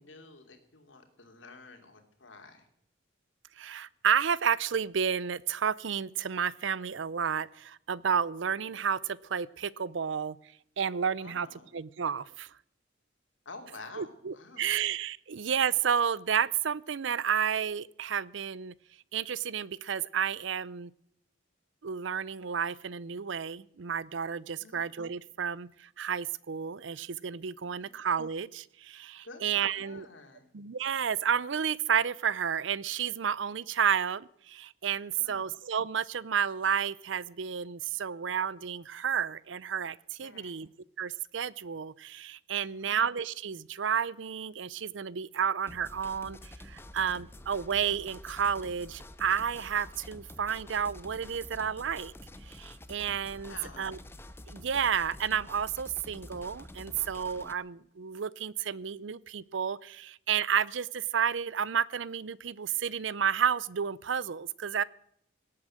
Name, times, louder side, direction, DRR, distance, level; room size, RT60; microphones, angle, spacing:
voice 1, 0.0-2.7 11.2-11.7 13.4-14.7 24.6-24.8 27.8-27.9 29.2-30.5 35.2-35.5 40.2-40.7 42.6-43.0 53.5-54.0, left 3 dB, 70° left, 5 dB, 2.8 m, -50 dB
voice 2, 3.6-10.4 10.8-11.5 11.7-12.5 14.0-18.7 19.1-20.9 21.8-30.1 30.5-40.7 41.0-52.1 52.5-54.0 54.5-64.8, right 7 dB, 70° right, 21 dB, 0.5 m, -31 dB
sound 1, 45.7-57.5, left 1 dB, 10° left, 0.7 m, -48 dB
18.0 x 8.7 x 7.6 m, 0.71 s
head